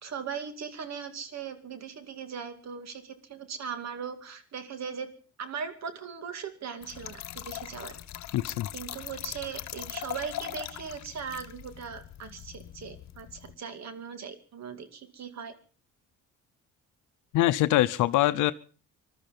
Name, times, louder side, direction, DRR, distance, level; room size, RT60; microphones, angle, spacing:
voice 1, 0.0-5.1 5.4-7.9 8.7-15.5, right 6 dB, 60° right, 9 dB, 2.4 m, -39 dB
Trickle dribble / Fill (with liquid), 6.8-13.6, left 12 dB, 65° left, 1.0 m, -41 dB
voice 2, 8.3-8.7 17.3-18.5, left 15 dB, 85° left, 13 dB, 0.7 m, -23 dB
20.5 x 12.5 x 5.3 m, 0.40 s
cardioid pair, 90°, 30 cm